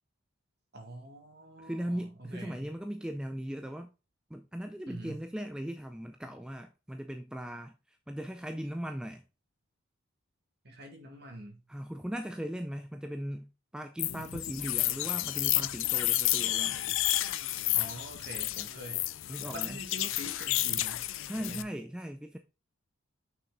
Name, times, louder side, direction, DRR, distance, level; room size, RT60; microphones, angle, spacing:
voice 1, 0.7-2.7 4.9-5.2 10.6-11.6 17.7-19.1 19.5-21.1 21.4-21.7, right 1 dB, 50° right, 2.0 m, -45 dB
voice 2, 1.6-3.9 4.3-9.2 11.7-16.8 19.3-19.8 21.3-22.4, equal, 5° right, 0.4 m, -38 dB
sound 1, 14.0-21.6, left 15 dB, 60° left, 0.4 m, -31 dB
6.0 x 6.0 x 3.8 m
head